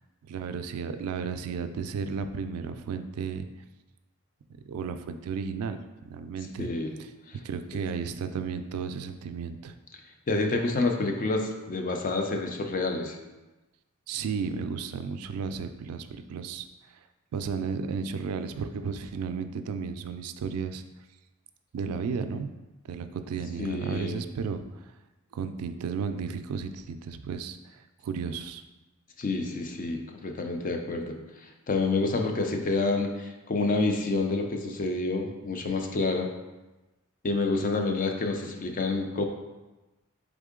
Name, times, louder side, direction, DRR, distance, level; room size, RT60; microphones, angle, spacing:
voice 1, 0.2-3.5 4.7-6.7 7.0-7.1 7.4-9.7 14.1-16.7 17.3-20.8 21.7-22.5 22.9-24.6 25.3-28.6, right 5 dB, 85° right, 9 dB, 0.3 m, -33 dB
voice 2, 6.6-6.9 7.3-7.4 10.3-13.2 23.6-24.2 29.2-36.3 37.2-39.2, left 3 dB, 40° left, 3 dB, 0.5 m, -28 dB
3.7 x 3.6 x 3.6 m, 1.1 s
head